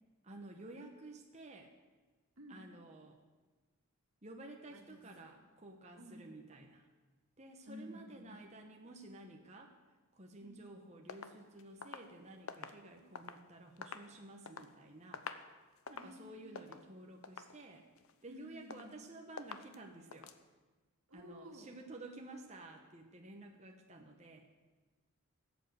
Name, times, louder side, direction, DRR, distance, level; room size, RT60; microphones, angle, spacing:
voice 1, 0.2-1.7 2.5-3.2 4.2-6.9 7.4-9.7 10.1-15.3 15.9-17.9 18.2-20.3 21.1-24.5, right 2 dB, 30° right, 2 dB, 1.2 m, -52 dB
voice 2, 2.4-2.7 4.7-5.3 6.0-6.3 7.7-8.3 10.4-10.6 15.9-16.7 18.3-19.0 21.1-21.7, left 1 dB, 75° right, 3 dB, 2.2 m, -54 dB
sound 1, 11.1-13.4 13.7-14.7 15.0-15.5 15.8-16.2 16.6-16.9 17.2-17.6 18.0-18.4 18.7-19.1 19.4-19.8 20.1-20.4, left 5 dB, 70° left, 0.9 m, -48 dB
17.0 x 8.3 x 8.0 m, 1.3 s
head